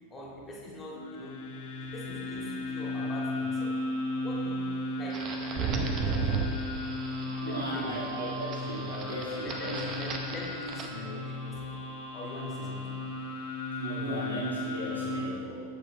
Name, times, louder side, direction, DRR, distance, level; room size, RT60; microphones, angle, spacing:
voice 1, 0.1-1.5 1.8-3.9 4.2-6.5 6.8-8.1 9.0-9.1 9.4-13.0 14.9-15.2, left 1 dB, 15° left, -3 dB, 2.1 m, -43 dB
sound 1, 0.9-15.2, left 2 dB, 55° left, 1.2 m, -35 dB
sound 2, 5.1-10.9, right 5 dB, 30° right, 0.8 m, -35 dB
voice 2, 7.4-9.8 12.6-12.7 13.8-15.6, equal, 75° right, -7 dB, 2.5 m, -36 dB
14.0 x 6.0 x 3.3 m, 2.2 s
figure-of-eight pair, 90°, 0 cm